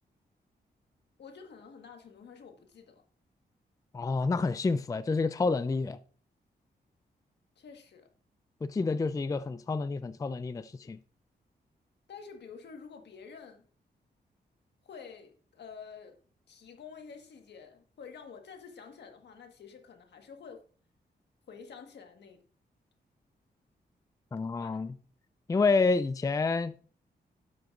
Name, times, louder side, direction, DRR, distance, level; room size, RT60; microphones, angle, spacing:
voice 1, 1.2-3.0 7.5-8.1 12.1-13.6 14.8-16.2 16.5-20.6 21.5-22.4 24.6-24.8, left 6 dB, 75° left, 1.5 m, -49 dB
voice 2, 3.9-6.0 8.6-11.0 24.3-24.9 25.5-26.7, left 4 dB, 20° left, 0.4 m, -28 dB
11.5 x 7.7 x 2.5 m
cardioid pair, 95°, 18 cm